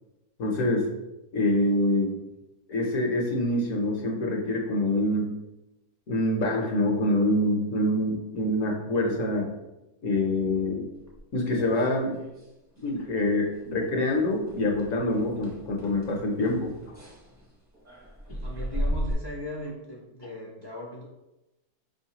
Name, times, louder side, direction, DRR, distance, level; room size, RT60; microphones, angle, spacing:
voice 1, 0.4-0.9 1.3-2.2 2.7-5.4 6.1-9.5 10.0-10.9 11.3-12.2 12.8-16.7, left 1 dB, 60° left, 0 dB, 1.0 m, -25 dB
sound 1, 11.1-12.5 12.8-13.2 13.5-13.6 14.1-19.1, equal, 20° right, 0.5 m, -36 dB
voice 2, 18.3-21.0, left 1 dB, 35° left, -4 dB, 0.4 m, -38 dB
5.1 x 3.1 x 2.8 m, 0.98 s
omnidirectional pair, 1.7 m